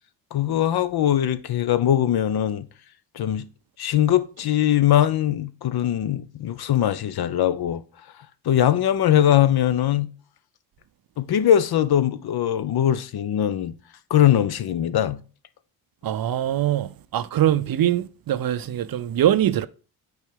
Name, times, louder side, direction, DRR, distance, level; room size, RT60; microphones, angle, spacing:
voice 1, 0.3-2.7 3.2-3.5 3.8-7.8 8.5-10.1 11.2-13.7 14.1-15.2, left 11 dB, 50° left, 0.6 m, -21 dB
voice 2, 16.0-19.7, right 11 dB, 45° right, 0.5 m, -23 dB
7.9 x 4.5 x 3.7 m
supercardioid pair, 50°, 50 cm